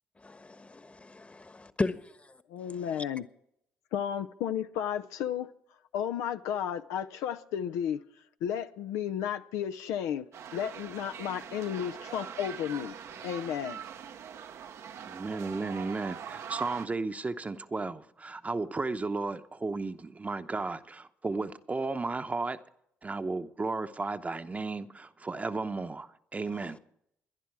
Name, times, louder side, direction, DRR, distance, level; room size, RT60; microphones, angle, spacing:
voice 1, 0.2-2.0, left 3 dB, 25° left, 1.2 m, -35 dB
voice 2, 2.5-3.3 3.9-5.5 5.9-8.0 8.4-12.9 13.2-13.8, left 9 dB, 80° left, 0.5 m, -33 dB
sound 1, 10.3-16.9, right 8 dB, 65° right, 0.8 m, -42 dB
voice 3, 15.1-22.6 23.0-26.8, right 3 dB, 25° right, 0.9 m, -34 dB
18.5 x 11.0 x 4.7 m
hypercardioid pair, 55°, 5 cm